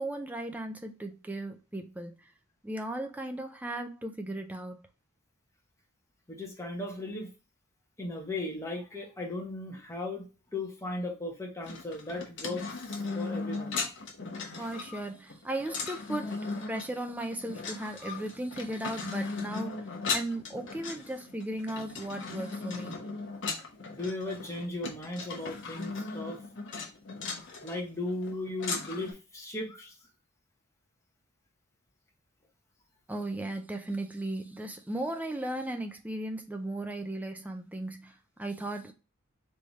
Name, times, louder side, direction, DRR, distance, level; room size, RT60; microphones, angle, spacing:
voice 1, 0.0-2.3 2.6-4.9 14.6-22.9 33.1-38.9, right 1 dB, 5° right, 0.4 m, -36 dB
voice 2, 6.3-7.3 8.0-10.3 10.5-13.8 23.9-26.4 27.6-29.9, left 2 dB, 15° left, 1.1 m, -37 dB
sound 1, 11.6-29.1, left 4 dB, 60° left, 0.9 m, -37 dB
3.5 x 3.3 x 4.0 m
head